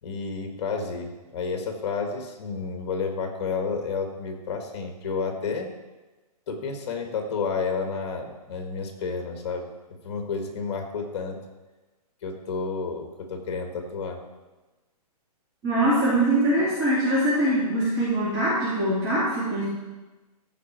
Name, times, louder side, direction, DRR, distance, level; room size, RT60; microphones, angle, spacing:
voice 1, 0.0-5.7 6.5-9.7 10.0-11.4 12.2-14.2, left 5 dB, 45° left, 4 dB, 1.7 m, -30 dB
voice 2, 15.6-19.6, right 1 dB, 20° right, -10 dB, 2.5 m, -23 dB
14.5 x 5.1 x 4.5 m, 1.2 s
hypercardioid pair, 165°, 20 cm